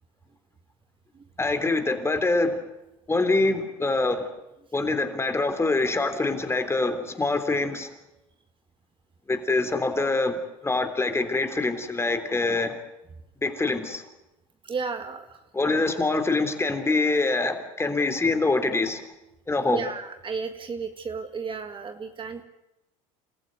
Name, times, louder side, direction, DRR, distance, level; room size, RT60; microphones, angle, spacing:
voice 1, 1.4-2.6 3.1-4.3 4.7-7.9 9.3-12.8 13.4-14.0 15.5-19.0 19.5-19.8, left 3 dB, 15° left, 8 dB, 3.3 m, -25 dB
voice 2, 14.6-15.4 15.7-16.0 19.7-22.4, right 5 dB, 30° right, 7 dB, 1.9 m, -33 dB
28.5 x 14.5 x 9.5 m, 0.93 s
supercardioid pair, 95°, 18 cm